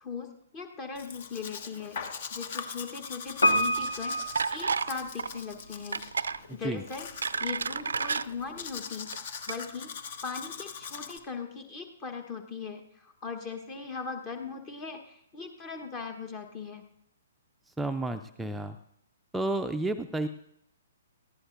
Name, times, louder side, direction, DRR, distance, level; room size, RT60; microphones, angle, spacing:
voice 1, 0.0-2.0 2.3-6.0 6.5-9.9 10.2-16.8, left 5 dB, 30° left, 5 dB, 1.2 m, -39 dB
Domestic sounds home sounds, 1.0-11.2, left 6 dB, 55° left, 1.3 m, -42 dB
Piano, 3.4-5.5 5.7-5.8, equal, 85° left, 1.5 m, -28 dB
sound 1, 4.3-4.9 5.2-5.4 5.9-6.4 6.9-8.2 9.0-9.2 9.5-9.6, right 5 dB, 75° right, 0.4 m, -30 dB
voice 2, 6.5-6.8 17.8-18.8 19.3-20.3, right 2 dB, 5° right, 6 dB, 0.5 m, -31 dB
19.0 x 15.0 x 2.6 m, 0.73 s
figure-of-eight pair, 125°, 0 cm